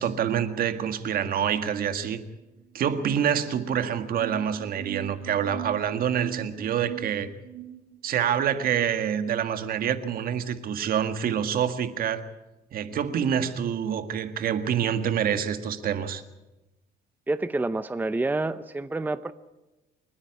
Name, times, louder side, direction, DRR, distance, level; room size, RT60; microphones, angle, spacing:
voice 1, 0.0-2.2 2.7-7.3 8.0-12.2 12.7-16.2, right 8 dB, 60° right, 9 dB, 1.7 m, -26 dB
sound 1, 2.7-8.5, right 13 dB, 85° right, 5.3 m, -41 dB
voice 2, 17.3-19.3, right 2 dB, 10° right, 12 dB, 0.7 m, -28 dB
29.0 x 9.8 x 9.9 m, 1.0 s
cardioid pair, 110°, 17 cm